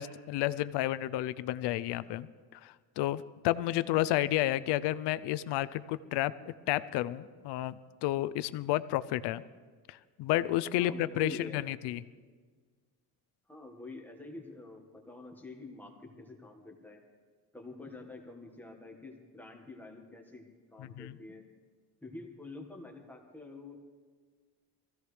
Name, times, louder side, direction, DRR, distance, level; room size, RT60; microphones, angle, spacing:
voice 1, 0.0-2.3 2.5-7.7 8.0-9.4 9.9-12.0 20.8-21.1, left 14 dB, 90° left, 16 dB, 0.6 m, -31 dB
voice 2, 10.8-11.7 13.5-17.0 17.5-21.4 22.0-23.7, left 2 dB, 5° left, 1 dB, 1.5 m, -47 dB
23.0 x 15.5 x 3.3 m, 1.5 s
cardioid pair, 165°, 40 cm